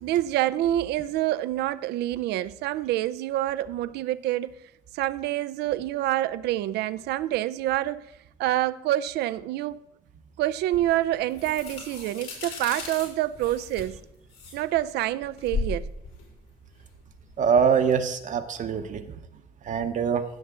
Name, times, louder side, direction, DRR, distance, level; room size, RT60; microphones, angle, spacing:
voice 1, 0.0-4.6 4.9-8.1 8.4-9.8 10.4-14.0 14.5-15.9, right 14 dB, 75° right, 0.5 m, -27 dB
sound 1, 10.7-17.5, left 4 dB, 85° left, 4.7 m, -37 dB
voice 2, 17.4-19.2 19.7-20.2, right 6 dB, 50° right, 0.9 m, -24 dB
16.0 x 7.2 x 3.7 m
cardioid pair, 110°, 17 cm